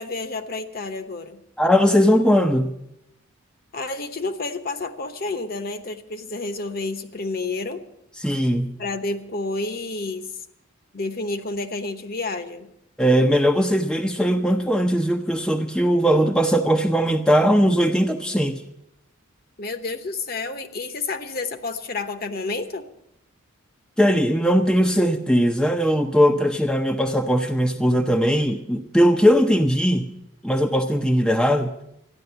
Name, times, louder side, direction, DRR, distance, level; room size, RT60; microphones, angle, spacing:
voice 1, 0.0-1.4 3.7-7.8 8.8-10.3 10.9-12.7 19.6-22.9, left 3 dB, 45° left, 9 dB, 1.0 m, -30 dB
voice 2, 1.6-2.7 8.2-8.8 13.0-18.6 24.0-30.1 30.4-31.7, equal, 5° left, 4 dB, 0.6 m, -19 dB
13.5 x 10.5 x 7.9 m, 0.80 s
head